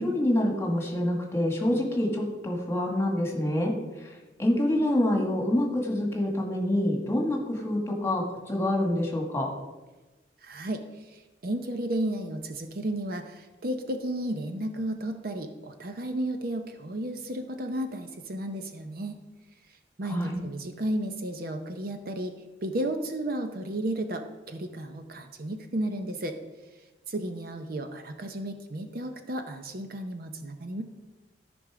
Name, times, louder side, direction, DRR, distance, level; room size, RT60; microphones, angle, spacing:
voice 1, 0.0-3.7 4.0-4.1 4.4-9.5 20.1-20.4, left 1 dB, 15° left, 0 dB, 1.7 m, -26 dB
voice 2, 10.4-10.8 11.1-19.2 20.0-22.3 22.6-26.4 27.1-30.8, right 1 dB, 55° right, 7 dB, 0.7 m, -33 dB
13.5 x 5.4 x 4.9 m, 1.2 s
head